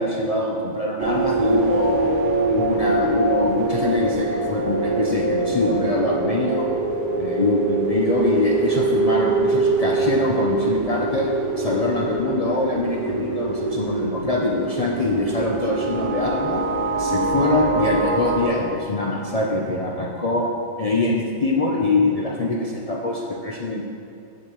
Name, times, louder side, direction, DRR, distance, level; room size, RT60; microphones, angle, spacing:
voice 1, 0.0-2.1 2.5-6.6 7.2-11.3 11.6-16.6 17.0-20.4 20.8-23.8, left 2 dB, 55° left, -3 dB, 0.4 m, -23 dB
sound 1, 1.0-18.5, right 2 dB, 70° right, 0.9 m, -23 dB
8.0 x 6.7 x 3.0 m, 2.5 s
omnidirectional pair, 1.4 m